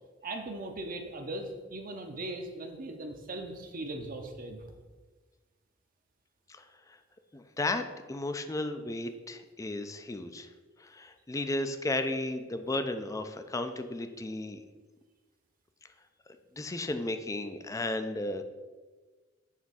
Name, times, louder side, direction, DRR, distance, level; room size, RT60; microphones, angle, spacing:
voice 1, 0.2-4.6, right 2 dB, 45° right, 4 dB, 0.7 m, -39 dB
voice 2, 6.5-7.0 7.3-10.5 10.8-14.6 16.6-18.4, left 2 dB, 15° left, 8 dB, 0.4 m, -34 dB
7.4 x 3.5 x 5.6 m, 1.4 s
head